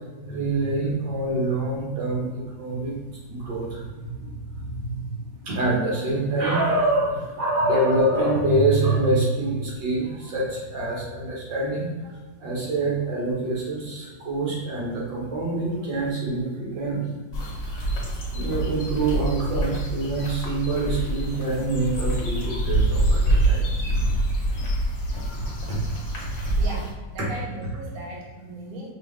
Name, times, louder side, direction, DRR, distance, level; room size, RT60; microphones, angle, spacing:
voice 1, 0.3-2.9 3.3-4.9 5.4-12.1 12.4-17.1 17.7-17.9 18.3-23.7 25.3-25.4 25.7-25.8 26.4-26.5 27.2-27.3, right 2 dB, 80° right, -6 dB, 2.0 m, -25 dB
sound 1, 17.3-26.9, right 1 dB, 55° left, 1.3 m, -25 dB
voice 2, 26.6-28.9, right 1 dB, 55° right, -3 dB, 1.2 m, -37 dB
5.5 x 2.5 x 3.3 m, 1.3 s
omnidirectional pair, 2.0 m